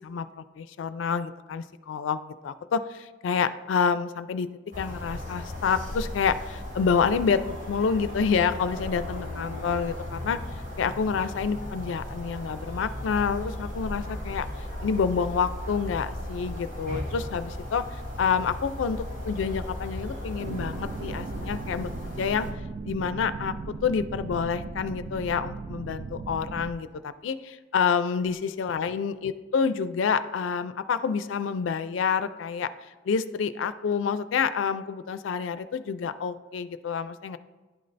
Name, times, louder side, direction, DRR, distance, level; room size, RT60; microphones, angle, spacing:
voice 1, 0.0-4.5 4.8-10.4 10.8-14.5 14.8-21.9 22.2-22.5 22.9-32.7 33.1-37.4, left 6 dB, 85° left, 12 dB, 0.4 m, -28 dB
sound 1, 4.7-22.5, left 1 dB, 80° right, 2.1 m, -36 dB
sound 2, 20.4-26.7, right 3 dB, 45° right, 0.3 m, -37 dB
11.0 x 3.9 x 3.2 m, 1.2 s
head